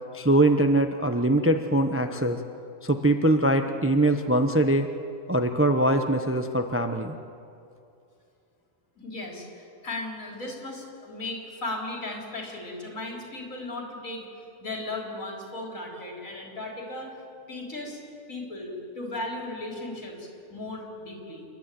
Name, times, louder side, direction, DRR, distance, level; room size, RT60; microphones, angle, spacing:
voice 1, 0.1-2.4 2.8-4.9 5.3-7.2, right 1 dB, 10° right, 6 dB, 0.7 m, -22 dB
voice 2, 9.0-14.3 14.6-17.2 17.5-18.0 18.3-21.5, left 2 dB, 70° left, 0 dB, 4.1 m, -36 dB
28.0 x 11.5 x 9.2 m, 2.5 s
omnidirectional pair, 1.5 m